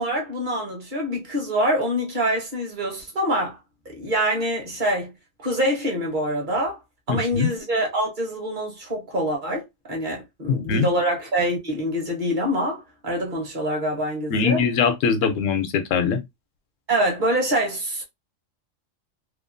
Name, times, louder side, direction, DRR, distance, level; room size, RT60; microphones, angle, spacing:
voice 1, 0.0-3.6 3.8-5.1 5.4-6.8 7.1-14.6 16.9-18.0, equal, 40° right, 1.1 m, -25 dB
voice 2, 7.1-7.5 10.5-10.9 14.3-16.2, left 6 dB, 80° left, 1.0 m, -22 dB
2.9 x 2.3 x 2.5 m
omnidirectional pair, 1.3 m